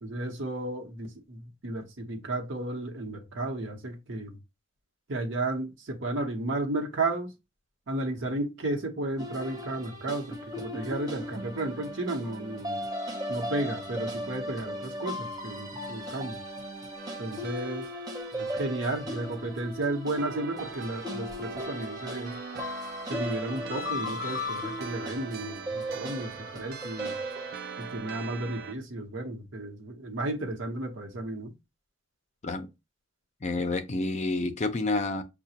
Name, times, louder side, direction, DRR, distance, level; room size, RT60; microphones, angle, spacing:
voice 1, 0.0-4.4 5.1-7.3 7.9-12.8 13.3-16.4 17.2-17.9 18.3-22.4 23.1-27.2 27.8-31.5, right 2 dB, 70° right, 0.9 m, -33 dB
sound 1, 9.2-27.9, left 1 dB, 20° right, 0.8 m, -37 dB
sound 2, 17.0-28.7, right 7 dB, 55° right, 0.4 m, -43 dB
voice 2, 33.4-35.2, left 2 dB, 35° left, 0.5 m, -29 dB
5.8 x 2.2 x 2.8 m
head